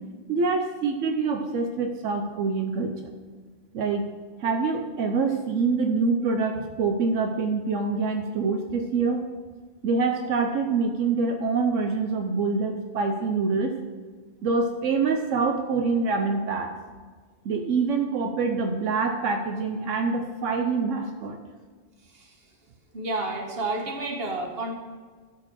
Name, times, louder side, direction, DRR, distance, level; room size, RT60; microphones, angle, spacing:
voice 1, 0.3-2.9 3.7-4.0 4.4-9.2 9.8-13.7 14.4-16.8 17.4-21.4, right 4 dB, 85° right, 4 dB, 1.1 m, -25 dB
voice 2, 22.9-24.7, right 2 dB, 55° right, 1 dB, 1.7 m, -30 dB
12.5 x 4.5 x 6.3 m, 1.5 s
omnidirectional pair, 1.2 m